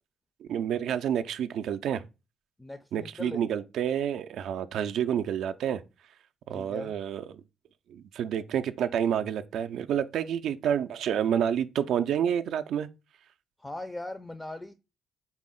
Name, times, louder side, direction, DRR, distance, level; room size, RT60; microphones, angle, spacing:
voice 1, 0.4-2.0 2.9-5.8 6.5-7.2 7.9-12.9, right 9 dB, 75° right, 0.3 m, -29 dB
voice 2, 2.6-3.4 6.5-6.9 13.6-14.7, left 1 dB, 10° left, 0.4 m, -39 dB
4.1 x 2.0 x 3.7 m
cardioid pair, 90°, 0 cm